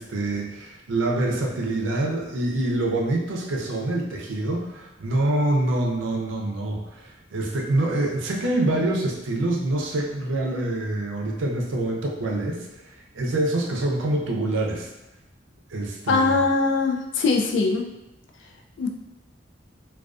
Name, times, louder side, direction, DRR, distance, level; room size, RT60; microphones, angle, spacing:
voice 1, 0.0-14.9 15.7-16.3, right 2 dB, 85° right, 0 dB, 0.5 m, -26 dB
voice 2, 16.1-17.9 18.8-18.9, left 3 dB, 70° left, 3 dB, 0.3 m, -21 dB
2.3 x 2.3 x 2.3 m, 0.90 s
head